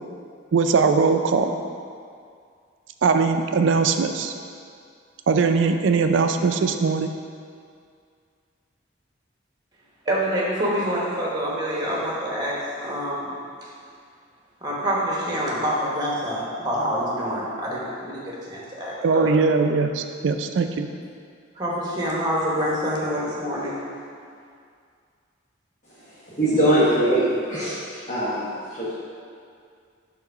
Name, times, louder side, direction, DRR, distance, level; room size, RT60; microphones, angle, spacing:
voice 1, 0.5-1.5 3.0-4.3 5.3-7.1 19.0-20.9, right 4 dB, 70° right, 7 dB, 0.4 m, -20 dB
voice 2, 10.0-13.3 14.6-19.3 21.6-23.7, equal, 20° right, -4 dB, 1.0 m, -26 dB
voice 3, 26.3-27.7 28.1-28.9, right 1 dB, 40° left, -10 dB, 1.0 m, -21 dB
4.7 x 3.8 x 5.5 m, 2.3 s
head